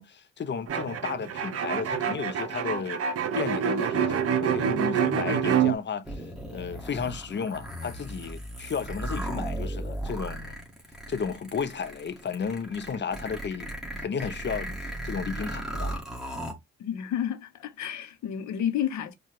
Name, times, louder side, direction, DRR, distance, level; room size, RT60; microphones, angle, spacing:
voice 1, 0.0-3.0 3.3-6.2 6.5-10.6 11.1-13.7 14.0-16.0, left 6 dB, 35° left, 0.6 m, -33 dB
sound 1, 0.7-5.7, right 8 dB, 50° right, 0.7 m, -26 dB
sound 2, 6.0-16.5, right 1 dB, ahead, 1.7 m, -36 dB
voice 2, 16.8-19.2, left 10 dB, 70° left, 0.8 m, -30 dB
4.6 x 2.3 x 2.9 m
cardioid pair, 90°, 30 cm